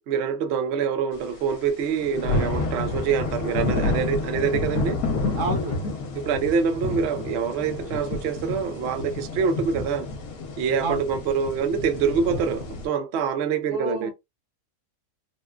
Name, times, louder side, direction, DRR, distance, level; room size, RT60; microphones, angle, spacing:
voice 1, 0.1-5.0 6.2-10.1 10.6-14.1, right 6 dB, 65° right, 0.7 m, -25 dB
sound 1, 1.5-1.6 1.8-12.9, left 3 dB, 70° left, 1.2 m, -29 dB
voice 2, 5.3-5.9 10.8-11.1 13.7-14.1, right 2 dB, 85° right, 1.7 m, -29 dB
3.5 x 2.3 x 2.3 m
omnidirectional pair, 1.6 m